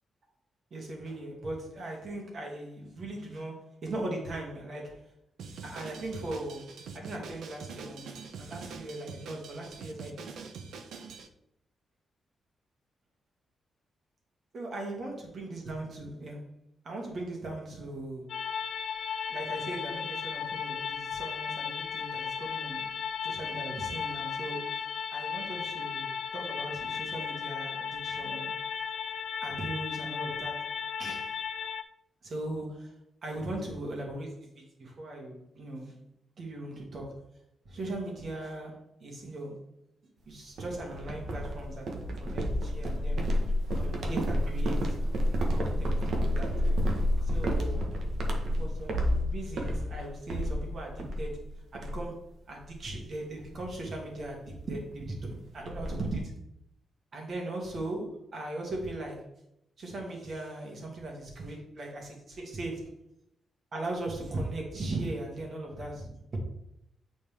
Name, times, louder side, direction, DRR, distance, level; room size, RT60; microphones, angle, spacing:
voice 1, 0.7-5.1 5.6-10.3 14.5-16.4 16.8-18.3 19.3-22.9 23.2-28.5 29.4-30.7 31.0-31.3 32.2-32.9 33.2-36.0 36.4-37.2 37.7-39.6 40.3-43.2 43.7-45.0 45.5-46.6 47.2-47.9 48.5-51.4 51.7-56.4 57.1-59.3 59.8-63.0 63.7-66.4, right 2 dB, 45° right, -1 dB, 2.0 m, -39 dB
Drum kit, 5.4-11.3, right 5 dB, 90° right, 0.7 m, -44 dB
sound 1, 18.3-31.8, left 7 dB, 60° left, 0.4 m, -35 dB
sound 2, 40.6-51.4 51.7-52.2 52.5-52.8 53.2-53.4 54.5-54.6 54.9-55.0 55.2-56.2, equal, 60° right, 1.1 m, -30 dB
9.0 x 4.2 x 3.4 m, 0.78 s
wide cardioid pair, 155°, 0 cm